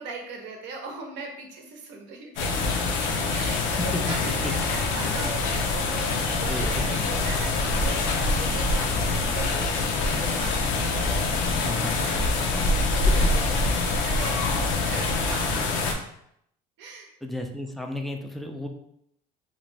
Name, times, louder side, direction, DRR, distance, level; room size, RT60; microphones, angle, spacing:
voice 1, 0.0-11.4 12.0-13.4 13.9-16.0 16.8-17.1, right 4 dB, 65° right, 2 dB, 0.7 m, -39 dB
sound 1, 2.4-15.9, left 3 dB, 80° left, 0.5 m, -25 dB
voice 2, 6.5-6.9 11.6-12.1 13.1-13.3 17.2-18.7, left 1 dB, ahead, 3 dB, 0.3 m, -33 dB
2.5 x 2.1 x 3.2 m, 0.74 s
supercardioid pair, 85°, 20 cm